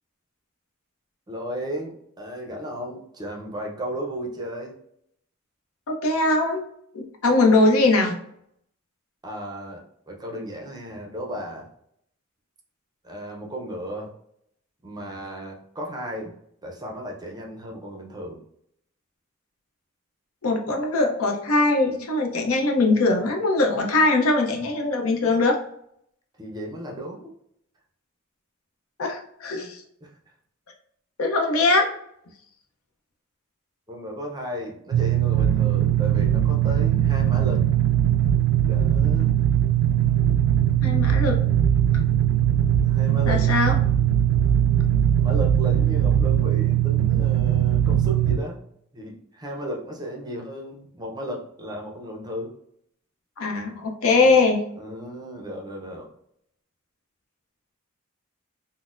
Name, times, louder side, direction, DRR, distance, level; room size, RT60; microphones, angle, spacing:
voice 1, 1.3-4.8 9.2-11.7 13.0-14.1 14.8-16.3 16.6-18.4 26.4-27.3 29.5-29.7 30.0-30.1 33.9-37.7 38.7-39.4 42.8-43.4 45.2-48.6 48.9-52.5 54.1-54.3 54.8-56.1, right 1 dB, 20° right, 0 dB, 0.5 m, -34 dB
voice 2, 5.9-6.6 6.9-8.2 20.4-25.6 29.0-29.8 31.2-31.9 40.8-41.4 43.3-43.7 53.4-54.6, left 3 dB, 80° left, 3 dB, 0.6 m, -21 dB
sound 1, 34.9-48.4, right 10 dB, 80° right, 0.3 m, -20 dB
4.0 x 2.0 x 2.4 m, 0.70 s
head